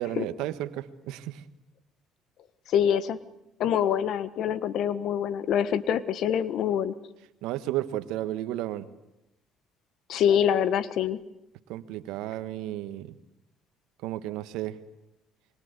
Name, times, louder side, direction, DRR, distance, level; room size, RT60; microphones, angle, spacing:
voice 1, 0.0-1.4 7.4-8.9 11.7-13.1 14.0-14.8, right 14 dB, 80° right, 12 dB, 1.5 m, -33 dB
voice 2, 2.7-3.2 3.6-7.0 10.1-11.2, left 9 dB, 65° left, 14 dB, 1.4 m, -25 dB
25.5 x 24.5 x 8.3 m, 0.90 s
supercardioid pair, 80°, 0 cm